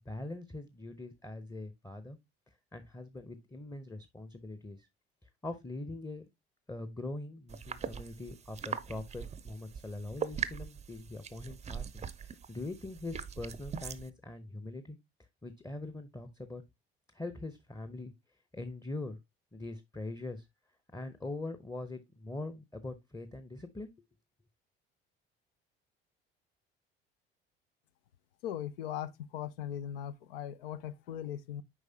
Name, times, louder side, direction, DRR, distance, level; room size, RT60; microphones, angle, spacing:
voice 1, 0.1-2.2 2.7-4.9 5.4-6.2 6.7-15.0 15.4-16.6 17.1-18.1 18.5-19.2 19.5-20.5 20.9-23.9, left 2 dB, 10° left, 0.8 m, -42 dB
sound 1, 7.5-14.1, right 7 dB, 25° right, 0.6 m, -41 dB
voice 2, 28.4-31.6, left 10 dB, 70° left, 0.6 m, -39 dB
8.0 x 4.9 x 2.8 m
figure-of-eight pair, 55°, 30 cm